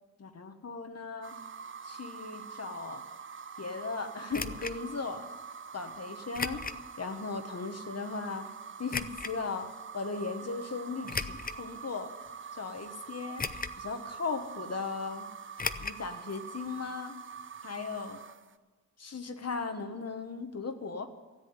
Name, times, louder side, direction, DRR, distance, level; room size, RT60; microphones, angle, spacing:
voice 1, 0.2-1.4 1.8-3.1 3.6-5.3 5.7-6.6 7.0-8.5 8.8-12.1 12.5-13.4 13.8-15.3 15.8-17.2 17.6-18.2 19.0-21.1, left 4 dB, 55° left, 7 dB, 1.3 m, -37 dB
sound 1, 1.2-18.6, right 6 dB, 40° right, 0.6 m, -45 dB
sound 2, 4.3-4.8 6.3-6.8 7.4-7.5 8.9-9.3 11.0-11.6 12.3-12.4 13.4-13.9 14.1-14.2 15.6-16.0 16.3-16.4 16.7-16.8, left 4 dB, 30° left, 0.6 m, -36 dB
13.5 x 7.8 x 9.4 m, 1.3 s
cardioid pair, 50°, 30 cm